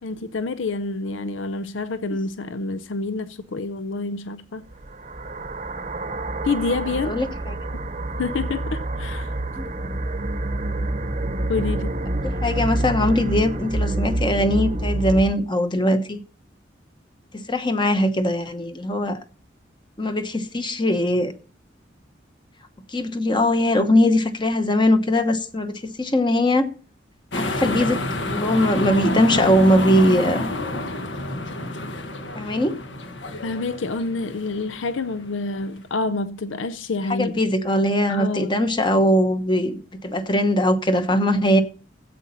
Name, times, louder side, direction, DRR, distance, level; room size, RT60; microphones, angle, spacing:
voice 1, 0.0-4.7 6.4-7.2 8.2-9.4 11.5-12.0 33.4-37.4 38.1-38.5, left 3 dB, 90° left, 0.6 m, -28 dB
sound 1, 4.7-15.3, right 2 dB, 35° right, 0.9 m, -27 dB
voice 2, 12.2-16.2 17.3-19.2 20.0-21.3 22.9-26.7 27.4-30.5 32.3-32.8 37.2-41.6, left 1 dB, 25° left, 1.0 m, -20 dB
sound 2, 27.3-35.8, left 1 dB, 70° left, 1.4 m, -29 dB
13.5 x 8.5 x 4.2 m
head